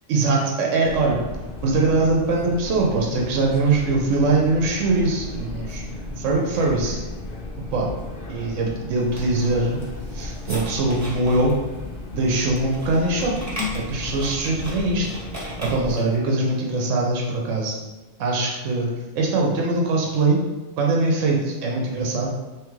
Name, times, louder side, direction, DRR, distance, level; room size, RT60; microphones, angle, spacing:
voice 1, 0.1-1.2 1.6-5.9 6.2-7.0 7.7-7.9 8.3-9.8 10.1-11.6 12.1-13.4 13.7-15.1 15.6-17.8 18.2-18.9 19.2-20.4 20.8-22.3, right 3 dB, 80° right, -1 dB, 1.0 m, -22 dB
sound 1, 0.8-15.9, left 2 dB, 50° left, 0.8 m, -35 dB
sound 2, 9.0-16.2, left 1 dB, 15° right, 0.7 m, -37 dB
3.5 x 3.1 x 3.1 m, 1.1 s
omnidirectional pair, 1.3 m